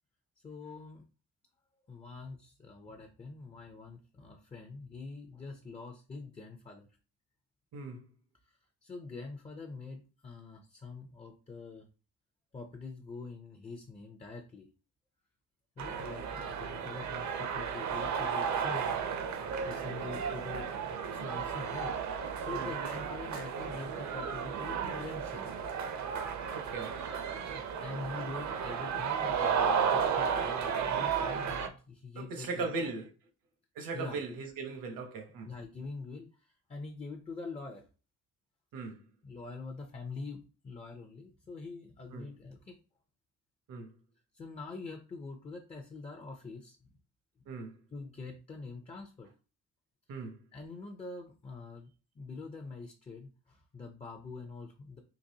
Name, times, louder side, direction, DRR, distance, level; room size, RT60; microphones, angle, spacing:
voice 1, 0.4-1.0 1.9-6.9 8.4-11.9 12.5-14.7 15.8-19.1 19.7-21.9 22.4-25.5 26.7-26.8 27.4-32.9 33.9-34.2 35.5-37.8 39.2-42.8 44.3-46.9 47.4-47.5 47.9-49.3 50.5-51.9 52.2-55.0, left 3 dB, 20° left, 0.4 m, -45 dB
voice 2, 7.7-8.0 22.5-22.7 26.5-27.0 32.2-33.0 33.8-35.5 38.7-39.0 42.1-42.3 43.7-43.9 47.5-47.7 50.1-50.3, right 4 dB, 80° right, 1.0 m, -38 dB
sound 1, 15.8-31.7, right 7 dB, 55° right, 0.6 m, -33 dB
3.9 x 2.9 x 2.7 m
cardioid pair, 135°, 33 cm